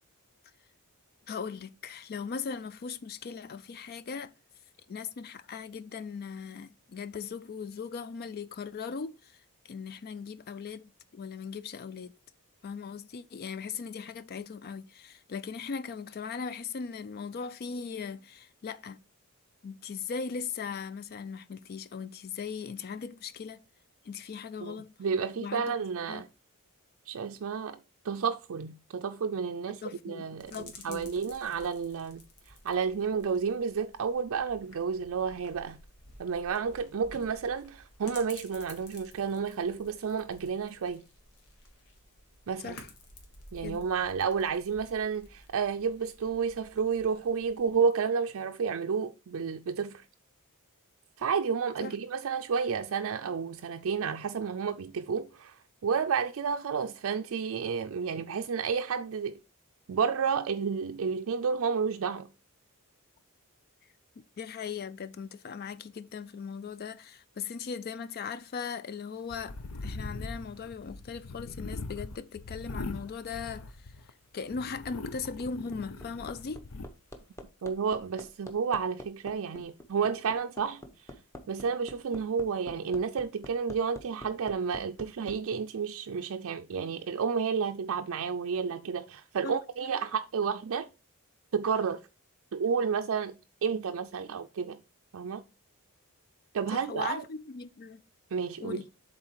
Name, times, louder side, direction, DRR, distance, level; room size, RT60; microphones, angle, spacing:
voice 1, 1.3-4.3 4.9-12.1 12.6-19.0 19.6-23.6 24.0-24.9 25.4-25.7 26.1-26.2 29.8-31.1 42.6-42.9 43.6-43.8 51.8-52.0 64.4-69.6 69.8-73.9 74.3-76.6 89.4-89.6 96.7-98.0 98.6-98.9, left 5 dB, 45° left, 0.4 m, -39 dB
voice 2, 24.6-26.3 27.1-27.8 28.0-35.8 36.2-41.0 42.5-42.8 43.5-50.0 51.2-55.6 55.8-59.3 59.9-62.3 77.6-80.8 81.5-90.9 91.5-92.0 92.5-94.8 95.1-95.4 96.5-97.2 98.3-98.8, right 6 dB, 65° right, 0.4 m, -31 dB
sound 1, 30.4-47.8, left 2 dB, 85° left, 1.8 m, -53 dB
sound 2, 69.3-74.1 74.5-76.9, left 2 dB, 70° left, 0.7 m, -41 dB
Hammer, 75.7-85.4 86.7-86.8, left 1 dB, 15° left, 0.9 m, -46 dB
7.4 x 3.9 x 4.6 m
head